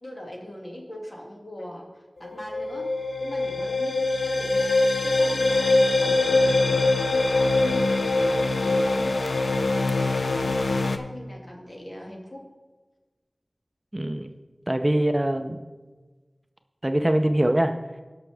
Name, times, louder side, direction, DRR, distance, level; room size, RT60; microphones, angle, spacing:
voice 1, 0.0-2.9 3.2-12.4 14.2-14.3, left 1 dB, 45° left, -1 dB, 2.3 m, -41 dB
sound 1, 2.2-11.0, left 2 dB, 80° left, 0.5 m, -23 dB
voice 2, 13.9-14.3 14.7-15.6 16.8-17.7, right 1 dB, 25° right, 7 dB, 0.6 m, -23 dB
18.0 x 6.1 x 3.4 m, 1.3 s
wide cardioid pair, 45°, 0 cm